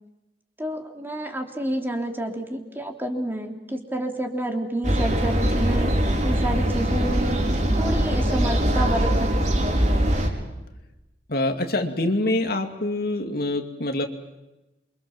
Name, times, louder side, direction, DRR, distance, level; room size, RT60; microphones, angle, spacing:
voice 1, 0.6-5.9 6.2-7.4 7.8-9.5, right 1 dB, 10° right, 2 dB, 3.4 m, -29 dB
sound 1, 4.8-10.3, right 1 dB, 45° right, 5.3 m, -22 dB
voice 2, 11.3-14.1, left 2 dB, 60° left, 5 dB, 2.5 m, -25 dB
28.0 x 25.5 x 7.3 m, 0.97 s
head